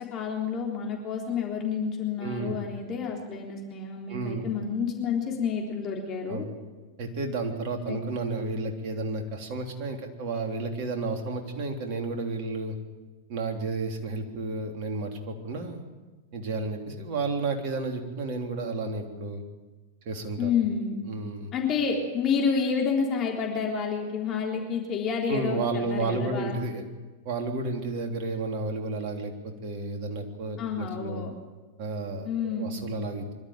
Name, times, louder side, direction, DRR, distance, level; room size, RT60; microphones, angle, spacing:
voice 1, 0.1-6.5 7.9-8.0 20.4-21.0 21.5-26.6 30.6-31.3 32.2-32.8, left 6 dB, 35° left, 0 dB, 3.7 m, -29 dB
voice 2, 2.2-2.6 4.1-4.4 6.3-6.4 7.0-12.7 13.3-15.8 16.3-19.4 20.0-20.5 21.0-21.5 25.3-26.8 27.2-31.2 31.8-33.3, right 3 dB, 50° right, 3 dB, 3.4 m, -32 dB
24.0 x 12.5 x 9.0 m, 1.3 s
figure-of-eight pair, 95°, 0 cm